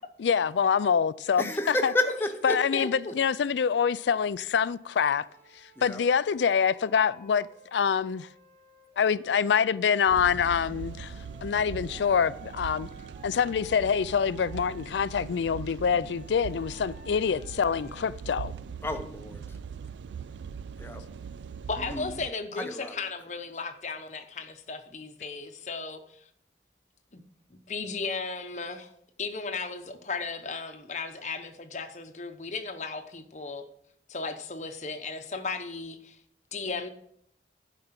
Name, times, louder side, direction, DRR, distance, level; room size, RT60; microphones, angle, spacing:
voice 1, 0.2-1.9 2.4-5.3 5.8-8.3 9.0-11.1 11.4-12.9 13.2-18.5, left 7 dB, 85° left, 0.4 m, -25 dB
voice 2, 1.4-2.5 5.8-6.0 18.8-19.6 20.8-21.0 21.8-22.1 22.6-22.9, left 2 dB, 15° left, 0.8 m, -31 dB
voice 3, 2.5-2.9 21.7-26.0 27.1-27.2 27.5-28.9 29.2-33.6 34.1-36.2 36.5-36.9, left 4 dB, 40° left, 0.9 m, -35 dB
Wind instrument woodwind instrument, 4.7-9.8 10.4-15.1 15.9-18.1, right 1 dB, 55° right, 2.1 m, -54 dB
sound 1, 10.1-22.3, right 6 dB, 85° right, 0.3 m, -41 dB
11.5 x 5.0 x 5.8 m
head